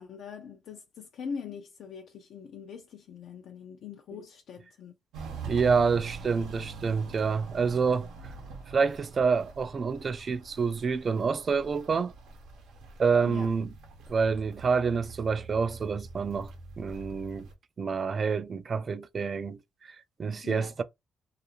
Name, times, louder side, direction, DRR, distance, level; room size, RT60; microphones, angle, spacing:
voice 1, 0.0-4.9 13.2-13.5 20.4-20.7, left 6 dB, 75° left, 0.4 m, -42 dB
Walk footsteps, 5.1-17.5, right 4 dB, 90° right, 0.7 m, -44 dB
voice 2, 5.5-8.1 8.7-12.1 13.0-13.7 14.1-16.5 16.8-17.5 17.8-20.8, right 5 dB, 45° right, 0.3 m, -27 dB
2.4 x 2.4 x 2.9 m
cardioid pair, 90°, 0 cm